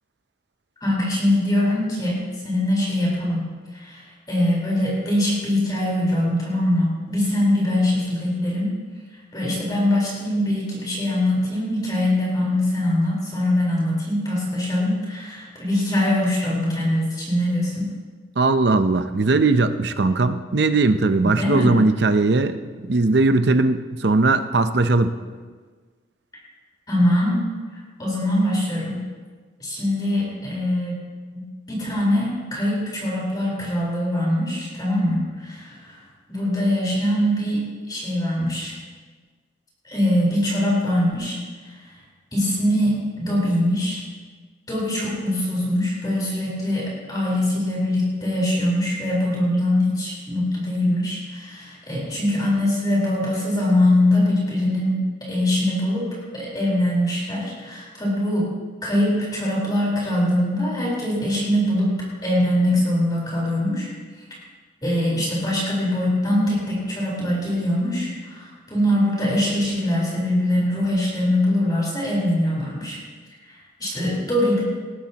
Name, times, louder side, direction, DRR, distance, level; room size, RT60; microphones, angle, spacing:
voice 1, 0.8-3.5 3.7-8.7 9.3-17.9 21.2-21.7 26.9-27.4 28.0-29.0 29.6-31.0 31.3-31.4 31.7-36.0 36.3-38.7 39.8-41.4 41.6-41.7 42.3-44.0 44.7-56.1 56.3-58.5 58.8-61.9 62.2-63.9 64.8-73.0 73.4-74.6, left 1 dB, 20° left, -5 dB, 4.2 m, -22 dB
voice 2, 18.4-25.2, right 3 dB, 65° right, 10 dB, 0.7 m, -19 dB
19.5 x 15.0 x 3.0 m, 1.5 s
head